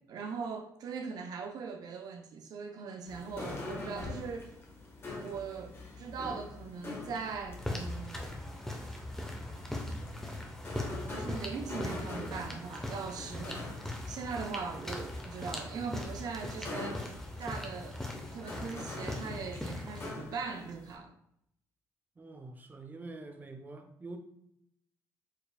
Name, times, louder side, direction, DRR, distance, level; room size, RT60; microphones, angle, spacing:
voice 1, 0.1-4.6 5.2-8.2 11.1-13.7 14.1-17.1 17.4-21.2, right 5 dB, 65° right, 0.5 m, -40 dB
sound 1, 3.1-20.9, left 2 dB, 35° left, 1.2 m, -44 dB
sound 2, 7.6-20.1, left 1 dB, 5° left, 0.8 m, -40 dB
voice 2, 22.2-24.2, right 2 dB, 25° right, 0.6 m, -46 dB
4.7 x 3.2 x 2.3 m
supercardioid pair, 70°, 7 cm